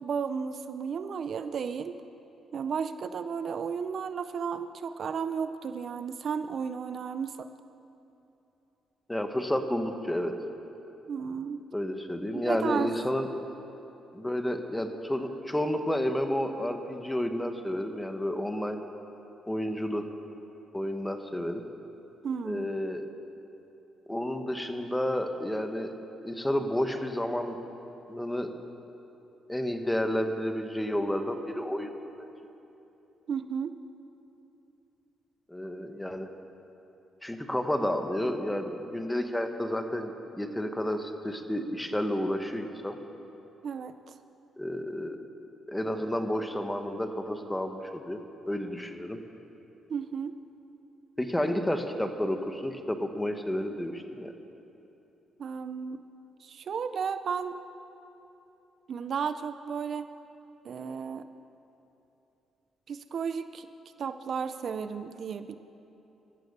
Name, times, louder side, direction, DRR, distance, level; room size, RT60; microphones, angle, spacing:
voice 1, 0.0-2.0 2.5-7.5 11.1-11.6 12.3-12.9 22.2-22.7 33.3-33.8 43.6-44.1 49.9-50.4 55.4-56.0 56.4-57.5 58.9-60.1 60.6-61.3 62.9-63.7 64.0-65.6, right 6 dB, 55° right, 11 dB, 0.5 m, -33 dB
voice 2, 9.1-10.4 11.7-13.3 14.1-18.8 19.5-20.1 20.7-21.6 22.4-23.1 24.1-25.9 26.2-27.6 28.1-28.5 29.5-31.9 32.2-32.3 35.5-36.3 37.2-43.0 44.6-45.2 45.7-48.2 48.5-49.2 51.2-54.3, left 1 dB, 10° left, 6 dB, 1.2 m, -31 dB
14.0 x 13.5 x 6.8 m, 3.0 s
cardioid pair, 90°, 0 cm